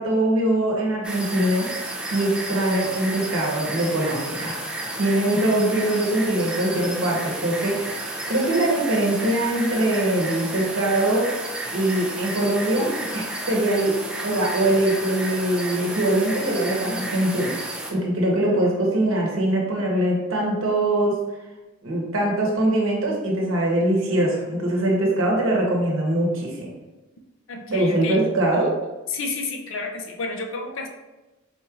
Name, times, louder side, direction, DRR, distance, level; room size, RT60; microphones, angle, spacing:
voice 1, 0.0-1.7 2.1-4.7 5.0-7.9 8.3-11.3 11.7-14.0 14.2-21.2 21.8-26.7 27.7-28.7, right 1 dB, 65° right, -2 dB, 0.9 m, -22 dB
sound 1, 1.0-17.9, right 1 dB, 5° right, 0.3 m, -32 dB
voice 2, 27.5-28.2 29.1-30.9, left 3 dB, 65° left, 3 dB, 0.5 m, -31 dB
4.2 x 3.0 x 2.4 m, 1.1 s
head